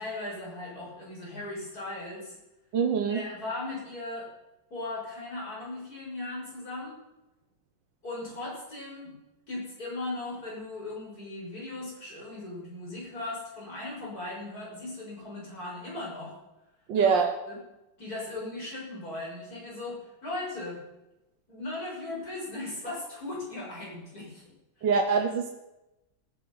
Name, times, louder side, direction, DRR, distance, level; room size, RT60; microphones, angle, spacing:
voice 1, 0.0-2.4 3.1-4.3 4.7-7.0 8.0-9.1 9.5-16.4 16.9-17.2 17.5-17.6 18.0-20.8 21.5-24.9, left 2 dB, 55° left, -4 dB, 7.1 m, -38 dB
voice 2, 2.7-3.2 16.9-17.3 24.8-25.5, right 5 dB, 80° right, 4 dB, 1.8 m, -24 dB
19.5 x 11.5 x 5.6 m, 0.97 s
omnidirectional pair, 2.0 m